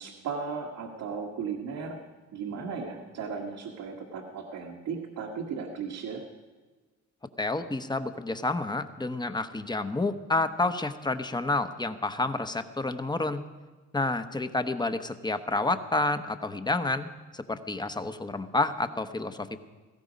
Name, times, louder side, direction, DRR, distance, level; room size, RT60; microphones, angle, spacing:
voice 1, 0.0-2.0 2.3-6.2, right 5 dB, 85° right, -1 dB, 1.8 m, -36 dB
voice 2, 7.4-13.4 13.9-19.6, left 2 dB, 15° left, 10 dB, 0.9 m, -29 dB
17.5 x 15.0 x 5.2 m, 1.3 s
cardioid pair, 90°, 30 cm